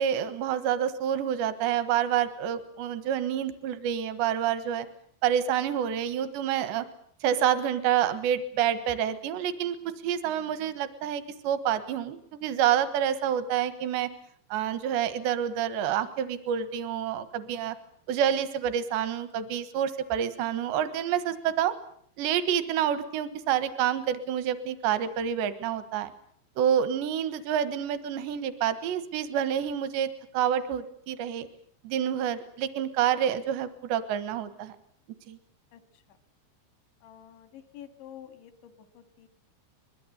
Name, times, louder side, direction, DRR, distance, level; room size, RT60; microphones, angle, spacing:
voice 1, 0.0-4.9 5.2-6.9 7.2-9.8 10.0-14.1 14.5-17.8 18.1-21.7 22.2-26.1 26.6-31.5 31.8-34.8 35.3-35.4, right 9 dB, 80° right, 12 dB, 3.6 m, -28 dB
voice 2, 37.0-39.3, left 10 dB, 85° left, 9 dB, 4.2 m, -48 dB
25.5 x 21.5 x 8.1 m, 0.64 s
omnidirectional pair, 5.1 m